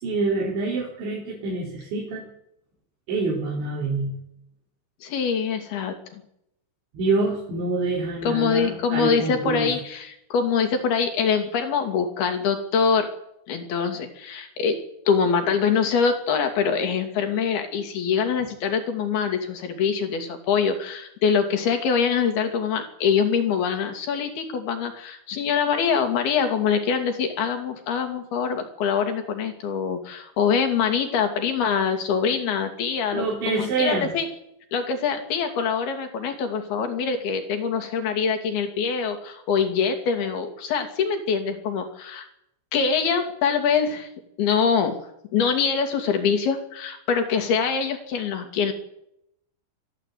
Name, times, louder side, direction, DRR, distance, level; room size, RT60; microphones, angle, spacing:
voice 1, 0.0-2.3 3.1-4.1 6.9-9.7 33.1-34.1, right 3 dB, 85° right, -4 dB, 6.6 m, -26 dB
voice 2, 5.0-6.2 8.2-13.1 13.5-14.8 15.1-34.3 34.7-42.3 42.7-44.1 44.4-45.0 45.3-48.7, left 6 dB, 65° left, 5 dB, 4.3 m, -24 dB
23.0 x 14.5 x 8.4 m, 0.78 s
omnidirectional pair, 5.1 m